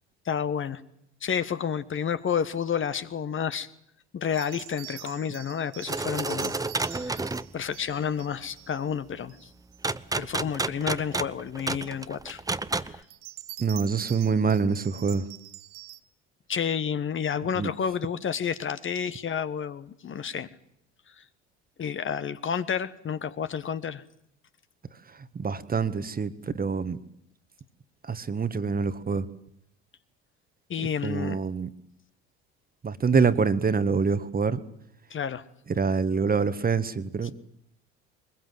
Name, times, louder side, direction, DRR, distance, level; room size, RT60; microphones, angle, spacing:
voice 1, 0.2-0.8 1.2-3.7 4.1-6.5 6.8-7.3 7.5-9.4 10.2-12.4 12.8-13.0 16.5-20.5 21.8-24.0 30.7-31.4 35.1-35.4, left 7 dB, 35° left, 13 dB, 1.4 m, -30 dB
sound 1, 4.3-8.9 9.3-9.8 10.4-10.5 13.0-16.0, right 18 dB, 65° right, 1.3 m, -45 dB
sound 2, 5.9-7.5 9.8-13.0, right 3 dB, 10° right, 0.9 m, -30 dB
voice 2, 13.6-15.3 17.5-17.7 25.3-27.0 28.0-29.3 30.8-31.7 32.8-34.6 35.7-37.3, right 5 dB, 25° right, 13 dB, 1.7 m, -26 dB
22.0 x 21.5 x 8.0 m, 0.74 s
hypercardioid pair, 70°, 35 cm